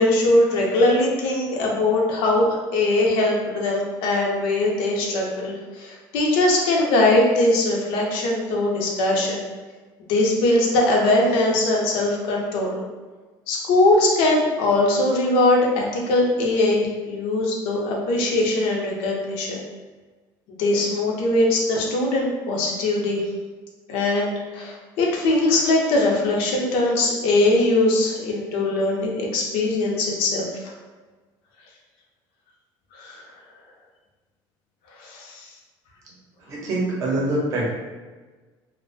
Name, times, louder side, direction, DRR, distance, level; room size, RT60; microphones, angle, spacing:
voice 1, 0.0-9.4 10.1-12.8 13.5-19.6 20.6-23.2 23.9-30.5 33.0-33.2 35.0-35.5, left 2 dB, 90° left, -1 dB, 0.6 m, -21 dB
voice 2, 36.5-37.8, right 2 dB, 40° right, -4 dB, 0.6 m, -24 dB
2.5 x 2.1 x 2.5 m, 1.3 s
cardioid pair, 175°, 9 cm